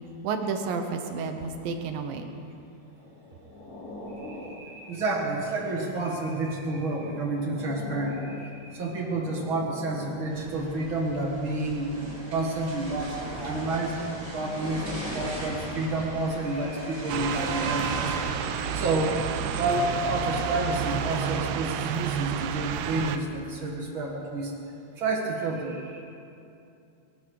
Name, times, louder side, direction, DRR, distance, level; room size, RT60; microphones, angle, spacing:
voice 1, 0.2-2.3, right 5 dB, 70° right, 6 dB, 2.5 m, -31 dB
sound 1, 2.9-6.0 6.6-10.8 11.6-12.7 13.6-16.9 17.6-17.7, left 1 dB, 50° left, 3.6 m, -43 dB
voice 2, 4.2-11.9 12.3-18.2 18.5-24.5 24.9-26.0, right 2 dB, 55° right, 0 dB, 1.4 m, -30 dB
sound 2, 10.3-21.4, right 1 dB, 35° right, 3.8 m, -39 dB
sound 3, 17.1-23.2, right 9 dB, 85° right, 2.7 m, -30 dB
23.0 x 12.5 x 4.8 m, 2.7 s
omnidirectional pair, 4.6 m